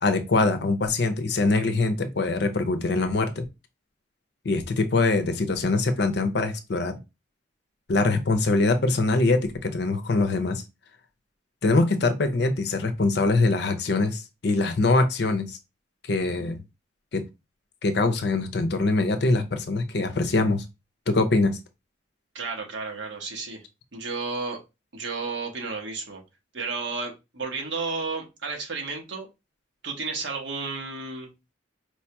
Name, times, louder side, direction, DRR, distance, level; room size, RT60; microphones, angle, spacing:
voice 1, 0.0-3.4 4.4-6.9 7.9-10.6 11.6-15.6 16.1-16.6 17.1-17.2 17.8-20.6 21.1-21.6, left 3 dB, 65° left, 0.6 m, -23 dB
voice 2, 22.3-23.6 23.9-24.6 24.9-26.2 26.5-29.3 29.8-31.3, right 4 dB, 85° right, 1.2 m, -32 dB
4.5 x 2.8 x 2.2 m
head